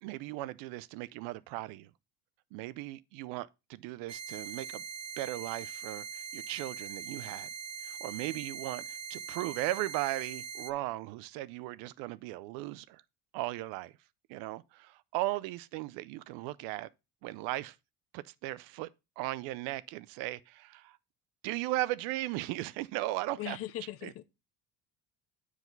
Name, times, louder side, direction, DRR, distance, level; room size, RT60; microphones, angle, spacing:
voice 1, 0.0-1.9 2.5-4.8 5.2-7.5 7.8-13.0 13.3-13.9 14.3-16.9 17.2-17.8 18.1-18.9 19.2-21.0 21.4-23.6 24.0-24.1, right 17 dB, 80° right, 0.6 m, -37 dB
sound 1, 4.1-10.7, right 6 dB, 15° right, 0.4 m, -42 dB
voice 2, 23.4-24.2, left 13 dB, 45° left, 0.6 m, -39 dB
7.9 x 4.9 x 3.9 m
cardioid pair, 145°, 33 cm